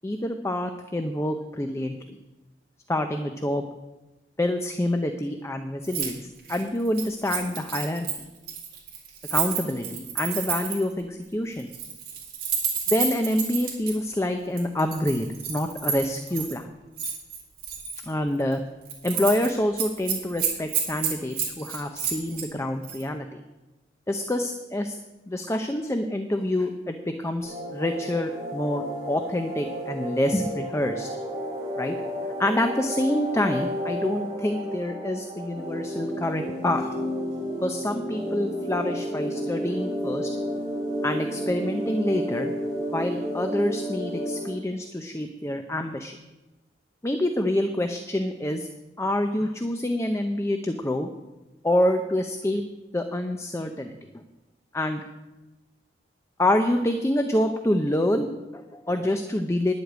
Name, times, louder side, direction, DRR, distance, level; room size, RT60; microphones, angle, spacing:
voice 1, 0.0-2.0 2.9-3.6 4.4-6.2 6.5-8.1 9.3-11.7 12.9-16.7 18.1-18.6 19.0-23.4 24.1-25.0 25.3-31.1 31.8-31.9 32.4-36.9 37.6-40.3 41.0-42.5 42.9-46.2 47.0-48.7 49.0-51.1 51.6-52.6 52.9-53.9 54.7-55.0 56.4-59.7, left 1 dB, 15° left, 6 dB, 0.6 m, -27 dB
Keys jangling, 5.8-6.1 6.4-10.9 11.6-13.9 14.6-16.5 17.0-18.0 18.4-18.6 18.9-19.5 19.8-22.5 22.8-23.0, right 7 dB, 55° right, 3.8 m, -30 dB
sound 1, 27.4-44.5, equal, 25° right, 5.3 m, -32 dB
10.5 x 8.1 x 8.0 m, 1.1 s
head